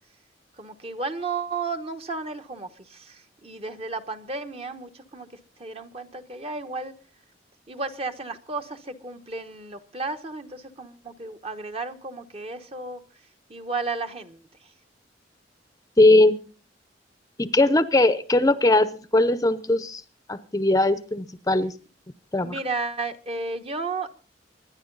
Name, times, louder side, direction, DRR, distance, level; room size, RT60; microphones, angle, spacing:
voice 1, 0.6-5.3 5.6-6.9 7.7-13.0 13.5-14.7 22.4-24.1, right 3 dB, 35° right, 1.2 m, -33 dB
voice 2, 16.0-16.4 17.4-20.0 20.3-21.7 22.3-22.5, left 2 dB, 20° left, 0.7 m, -20 dB
25.0 x 10.5 x 4.0 m
head